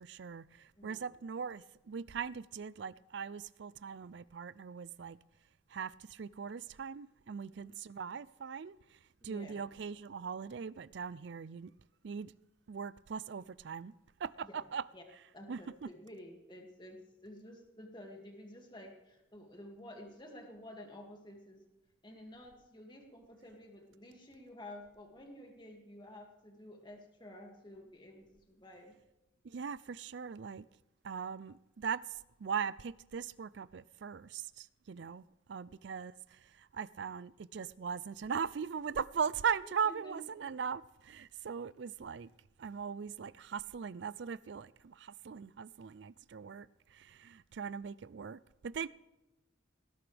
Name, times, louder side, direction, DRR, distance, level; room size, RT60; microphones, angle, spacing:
voice 1, 0.0-5.2 5.7-8.8 9.2-11.7 12.0-12.3 12.7-13.9 14.2-14.8 15.5-15.9 29.4-30.7 31.0-32.0 32.4-42.3 42.6-48.9, right 6 dB, 60° right, 0.4 m, -40 dB
voice 2, 0.8-1.1 7.5-7.7 9.2-9.6 14.4-14.6 14.9-15.0 15.3-21.6 22.0-29.0 35.7-35.8 39.8-40.4, left 1 dB, 25° left, 2.3 m, -51 dB
19.0 x 17.5 x 3.4 m
head